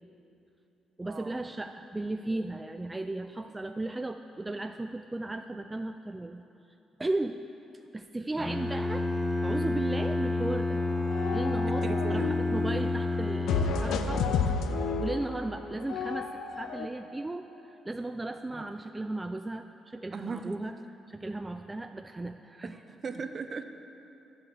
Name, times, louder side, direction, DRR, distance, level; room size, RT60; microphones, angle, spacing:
voice 1, 1.0-6.4 7.0-7.4 7.9-9.1 9.4-10.8 11.3-14.3 15.0-20.8 21.1-22.8, right 2 dB, 15° right, 7 dB, 0.4 m, -35 dB
Bowed string instrument, 8.4-14.2, left 2 dB, ahead, 1.1 m, -30 dB
sound 1, 10.8-12.9 13.5-16.9, left 5 dB, 85° left, 0.7 m, -31 dB
voice 2, 11.8-12.4 18.5-18.6 20.1-20.5 22.6-23.6, right 5 dB, 45° right, 8 dB, 0.8 m, -38 dB
11.5 x 7.8 x 7.9 m, 2.9 s
cardioid pair, 90°, 0 cm